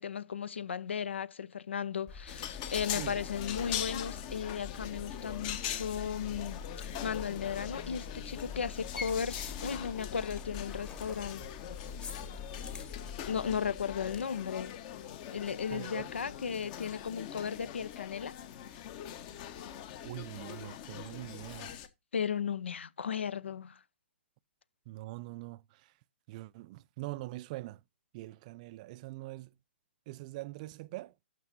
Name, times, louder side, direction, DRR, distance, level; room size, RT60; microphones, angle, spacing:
voice 1, 0.0-11.5 12.7-12.8 13.3-14.8 15.3-18.4 22.1-23.8, left 7 dB, 75° left, 0.7 m, -36 dB
sound 1, 2.1-14.2, left 5 dB, 15° left, 1.3 m, -44 dB
sound 2, 2.3-21.9, left 10 dB, 40° left, 1.2 m, -42 dB
voice 2, 15.7-16.1 20.0-21.7 24.9-25.6 26.3-27.8 28.1-29.5 30.1-31.1, right 18 dB, 40° right, 0.4 m, -43 dB
12.5 x 6.8 x 2.6 m
hypercardioid pair, 125°, 6 cm